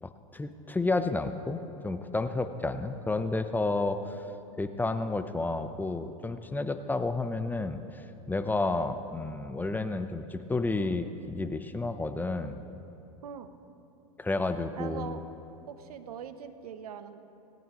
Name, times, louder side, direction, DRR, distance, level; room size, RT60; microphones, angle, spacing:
voice 1, 0.0-4.2 4.6-12.6 14.2-15.2, left 2 dB, 10° left, 9 dB, 0.7 m, -31 dB
voice 2, 14.8-15.2 15.7-17.2, right 8 dB, 85° right, 10 dB, 0.9 m, -41 dB
18.0 x 17.5 x 3.0 m, 2.9 s
hypercardioid pair, 105°, 19 cm